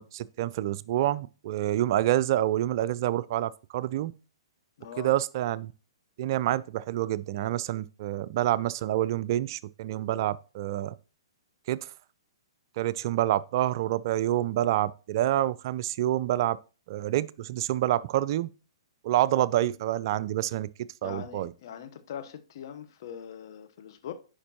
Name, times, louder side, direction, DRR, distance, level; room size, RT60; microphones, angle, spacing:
voice 1, 0.0-4.1 5.0-5.7 6.2-10.9 11.7-11.9 12.8-16.6 16.9-18.5 19.0-20.7 21.0-21.5, right 13 dB, 50° right, 0.3 m, -27 dB
voice 2, 4.8-5.1 21.0-24.1, left 9 dB, 55° left, 1.0 m, -42 dB
10.0 x 5.1 x 3.0 m
hypercardioid pair, 125°, 3 cm